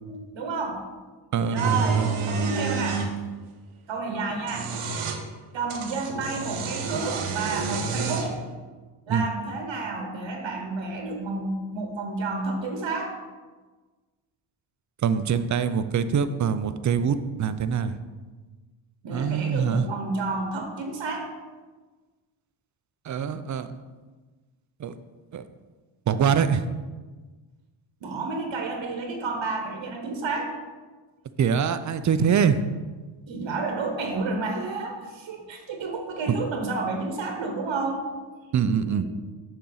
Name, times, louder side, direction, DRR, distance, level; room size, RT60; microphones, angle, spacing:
voice 1, 0.0-0.8 1.5-3.0 3.9-4.7 5.5-8.4 9.1-13.2 19.0-21.3 28.0-30.5 33.3-38.0 38.5-39.1, right 3 dB, 65° right, 3 dB, 1.1 m, -30 dB
voice 2, 1.3-2.1 9.1-9.2 15.0-17.9 19.1-19.9 23.0-23.7 24.8-24.9 25.3-25.4 26.1-26.6 31.4-32.6 36.3-36.4 38.5-39.1, right 7 dB, 40° right, 12 dB, 0.5 m, -24 dB
sound 1, 1.6-3.1 4.3-5.2 5.7-8.4, right 4 dB, 85° right, 1.0 m, -29 dB
7.0 x 6.3 x 3.9 m, 1.3 s
cardioid pair, 100°, 49 cm